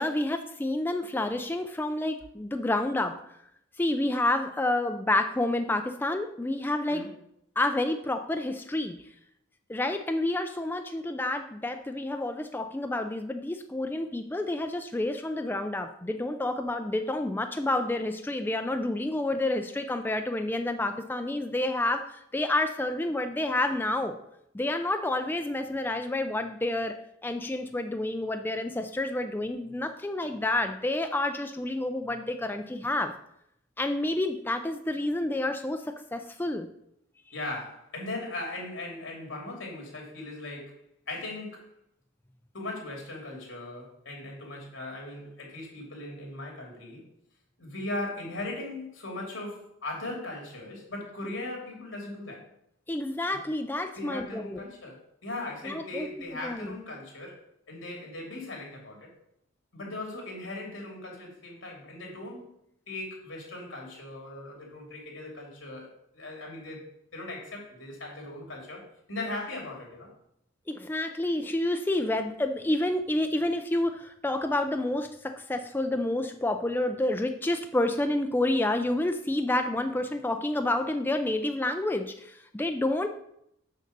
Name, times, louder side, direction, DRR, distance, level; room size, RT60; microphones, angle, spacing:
voice 1, 0.0-3.2 3.8-7.0 7.6-8.9 9.7-24.1 24.5-27.0 27.2-33.1 33.8-36.7 52.9-54.6 55.6-56.8 70.7-83.1, left 1 dB, 10° left, 6 dB, 0.4 m, -29 dB
voice 2, 37.3-40.8 41.1-41.7 42.5-47.1 47.6-52.4 53.9-57.4 57.7-59.1 59.7-62.5 62.9-65.9 66.1-66.8 67.1-70.1, left 2 dB, 75° left, -1 dB, 3.3 m, -38 dB
6.5 x 6.4 x 6.6 m, 0.77 s
head